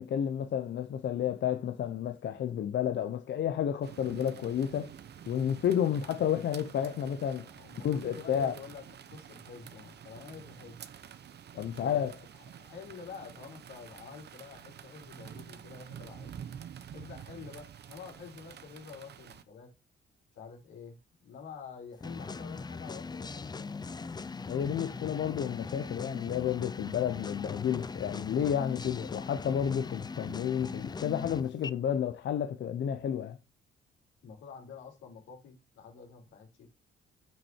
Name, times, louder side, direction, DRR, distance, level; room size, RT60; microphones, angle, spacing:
voice 1, 0.0-4.9 5.3-7.5 7.8-8.5 11.6-12.1 24.5-33.4, left 9 dB, 65° left, 1.0 m, -31 dB
sound 1, 3.8-19.4, right 8 dB, 55° right, 1.0 m, -49 dB
voice 2, 7.3-10.8 11.5-12.1 12.4-16.4 16.9-19.7 20.3-23.8 34.2-36.7, left 6 dB, 85° left, 4.5 m, -48 dB
sound 2, 22.0-31.7, left 4 dB, 20° left, 0.6 m, -40 dB
8.9 x 6.4 x 4.7 m
cardioid pair, 90°, 20 cm